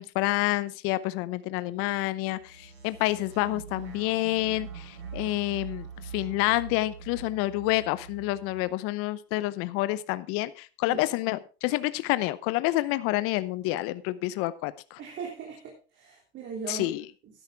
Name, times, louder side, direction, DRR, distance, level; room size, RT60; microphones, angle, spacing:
voice 1, 0.0-5.9 6.1-15.0 16.7-17.0, left 17 dB, 45° left, 16 dB, 0.8 m, -28 dB
sound 1, 2.4-8.6, right 7 dB, 90° right, 5.6 m, -43 dB
voice 2, 15.0-16.9 17.2-17.4, right 5 dB, 35° right, -2 dB, 3.1 m, -39 dB
12.5 x 11.0 x 3.5 m, 0.33 s
hypercardioid pair, 110°, 32 cm